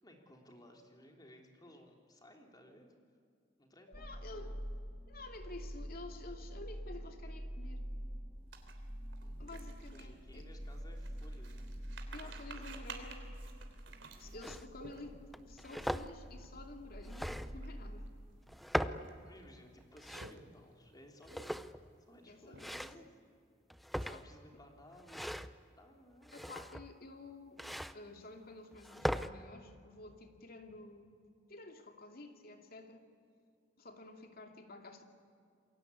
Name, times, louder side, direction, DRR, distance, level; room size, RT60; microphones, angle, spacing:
voice 1, 0.0-2.9 3.6-4.5 9.2-9.4 9.9-11.8 12.2-12.8 14.2-14.5 19.2-21.6 22.1-23.1 24.1-25.3 25.6-26.4, left 1 dB, 20° left, 2 dB, 3.5 m, -59 dB
voice 2, 3.9-4.6 5.1-7.8 9.4-10.5 12.1-13.3 14.2-18.1 18.5-18.6 22.3-22.8 24.0-24.3 26.3-31.1 31.5-33.0 33.8-35.0, left 2 dB, 55° left, 4 dB, 2.7 m, -51 dB
sound 1, 3.9-18.1, equal, 35° right, 2.4 m, -46 dB
sound 2, 8.5-15.4 15.9-16.1 16.4-16.6 17.3-18.1 18.7-19.4 20.0-20.7 21.3-21.8 22.2-23.0, right 4 dB, 85° right, 3.4 m, -53 dB
sound 3, 14.4-14.7 15.3-16.1 17.0-17.7 18.5-19.1 19.8-20.4 21.2-21.9 22.6-23.0 23.7-24.4 25.0-25.5 26.3-26.9 27.6-27.9 28.7-29.3, equal, ahead, 0.6 m, -39 dB
28.5 x 22.0 x 8.5 m, 2.4 s
head